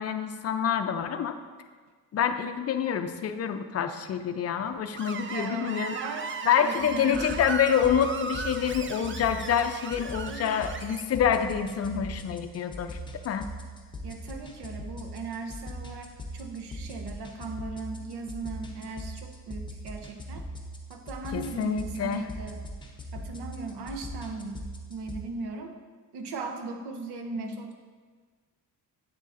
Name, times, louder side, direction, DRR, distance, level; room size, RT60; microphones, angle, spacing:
voice 1, 0.0-1.3 2.1-6.0 6.5-13.0 13.2-13.5 21.3-22.3 27.4-27.6, left 8 dB, 40° left, 8 dB, 0.4 m, -27 dB
Screech, 5.0-11.0, right 4 dB, 30° right, 0.4 m, -37 dB
voice 2, 5.3-7.4 10.3-10.7 14.0-20.5 20.9-22.6 23.1-24.6 24.9-25.7 26.1-27.7, right 3 dB, 80° right, 5 dB, 0.8 m, -38 dB
sound 1, 6.8-25.2, equal, 10° left, 0.7 m, -41 dB
8.0 x 6.5 x 2.5 m, 1.5 s
cardioid pair, 120°, 39 cm